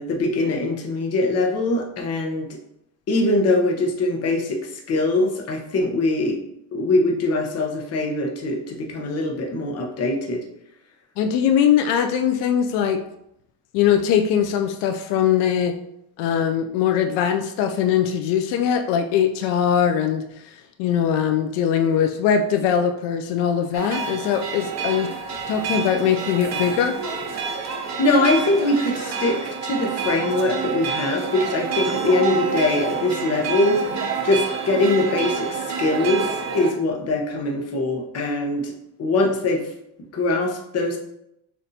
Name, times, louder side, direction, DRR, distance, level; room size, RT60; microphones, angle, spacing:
voice 1, 0.0-2.5 3.1-6.4 6.7-10.4 28.0-38.7 39.0-39.7 40.1-41.0, left 2 dB, 35° left, 1 dB, 0.8 m, -22 dB
voice 2, 11.2-13.0 13.7-15.8 16.2-20.2 20.8-25.1 25.5-27.0, left 8 dB, 85° left, 6 dB, 0.5 m, -21 dB
sound 1, 23.7-36.7, right 5 dB, 40° right, 0.7 m, -28 dB
6.2 x 2.6 x 2.7 m, 0.80 s
cardioid pair, 140°, 41 cm